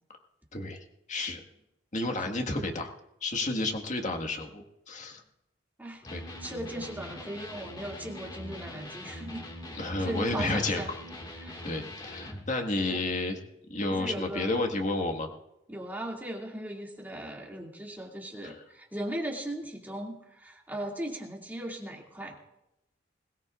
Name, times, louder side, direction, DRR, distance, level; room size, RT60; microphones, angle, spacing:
voice 1, 0.5-1.4 1.9-2.9 3.2-5.2 6.1-6.2 9.7-11.0 11.6-13.4 13.7-15.3 18.4-18.6, left 2 dB, 40° left, 3 dB, 1.7 m, -31 dB
Electric guitar, 6.0-12.5, left 1 dB, 25° left, 2.0 m, -42 dB
voice 2, 6.4-9.5 10.0-10.9 11.4-11.6 12.9-13.0 14.0-14.6 15.7-22.4, right 1 dB, 10° right, -1 dB, 2.5 m, -38 dB
22.0 x 17.5 x 2.5 m, 0.86 s
head